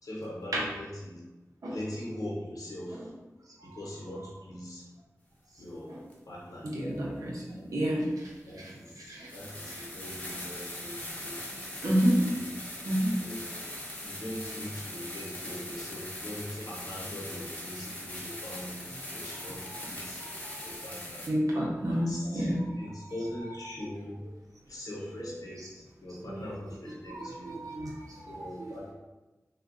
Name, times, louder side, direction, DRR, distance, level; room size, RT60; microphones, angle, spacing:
voice 1, 0.0-1.2 1.7-3.1 3.6-4.9 5.6-6.7 7.5-7.7 8.5-11.4 12.3-12.5 13.2-13.5 14.0-20.2 20.6-21.3 21.9-24.2 24.7-27.5 28.3-28.9, left 1 dB, 80° left, -4 dB, 0.7 m, -41 dB
sound 1, 6.1-6.2 8.0-8.1 8.7-8.8 9.2-21.3, left 1 dB, 25° left, 0.8 m, -41 dB
voice 2, 6.6-8.3 8.6-9.3 9.7-9.8 11.8-12.3 12.8-13.2 20.5-20.7 21.3-22.6 25.1-25.2 25.6-25.7 26.2-26.5 27.1-28.7, equal, 80° right, -3 dB, 0.7 m, -30 dB
3.3 x 2.2 x 2.5 m, 1.1 s
cardioid pair, 45°, 6 cm